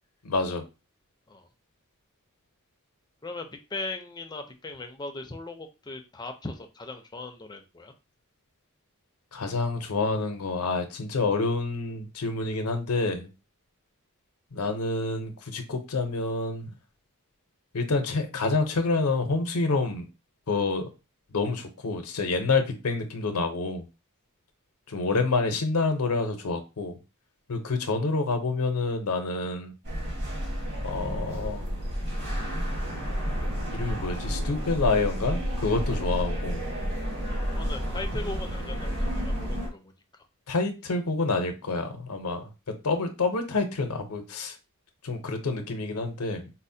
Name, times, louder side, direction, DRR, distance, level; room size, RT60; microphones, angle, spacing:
voice 1, 0.2-0.6 9.3-13.3 14.5-16.8 17.7-20.1 20.5-20.8 21.3-23.9 24.9-26.9 27.5-29.7 30.8-31.7 33.7-36.7 40.5-42.4 42.8-44.5 45.0-46.5, left 3 dB, 75° left, 6 dB, 0.6 m, -28 dB
voice 2, 3.2-7.9 37.5-40.2, left 2 dB, 20° left, 5 dB, 0.4 m, -39 dB
sound 1, 29.8-39.7, equal, 50° right, 1.2 m, -31 dB
4.1 x 2.1 x 2.6 m, 0.29 s
head